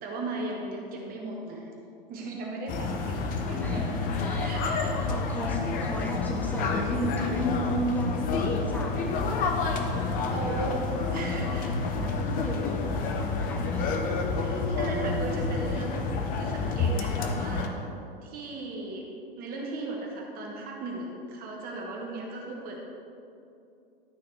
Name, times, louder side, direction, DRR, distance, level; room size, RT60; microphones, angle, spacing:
voice 1, 0.0-1.7 2.1-4.1 4.4-5.1 10.2-11.8 12.4-12.5 14.3-16.0 16.3-17.9 18.2-19.1 19.4-22.8, right 2 dB, 30° right, -1 dB, 1.2 m, -37 dB
sound 1, 2.7-17.7, left 4 dB, 30° left, 0.7 m, -29 dB
voice 2, 3.5-3.9 4.1-4.7 5.0-9.5 10.1-10.6 11.3-13.9 22.6-22.7, equal, 5° left, -3 dB, 1.4 m, -35 dB
12.0 x 4.1 x 4.5 m, 2.7 s
figure-of-eight pair, 100°, 30 cm